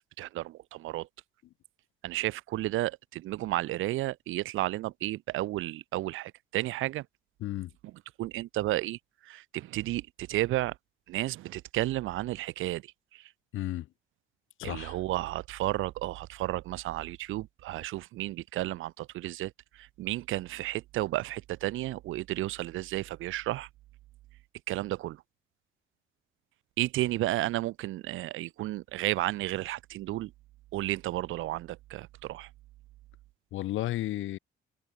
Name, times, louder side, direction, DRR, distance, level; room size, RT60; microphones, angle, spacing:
voice 1, 0.2-1.1 2.0-7.1 8.2-10.7 11.1-13.3 14.6-23.7 24.7-25.2 26.8-30.3 30.7-32.5, right 16 dB, 85° right, 1.1 m, -32 dB
voice 2, 7.4-7.7 13.5-13.9 14.6-15.0 33.5-34.4, left 15 dB, 85° left, 1.7 m, -33 dB
cardioid pair, 90°, 20 cm